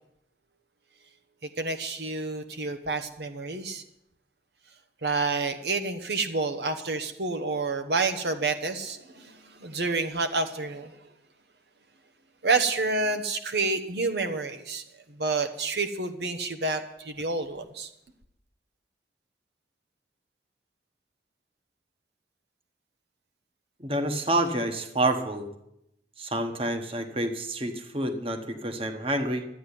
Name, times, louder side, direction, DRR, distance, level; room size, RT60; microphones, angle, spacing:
voice 1, 1.6-3.8 5.0-11.1 12.4-14.8 15.1-17.9, right 3 dB, 70° right, 7 dB, 1.1 m, -29 dB
voice 2, 23.8-25.5 26.2-29.5, right 1 dB, 30° right, 6 dB, 1.3 m, -28 dB
12.5 x 9.4 x 9.9 m, 0.82 s
head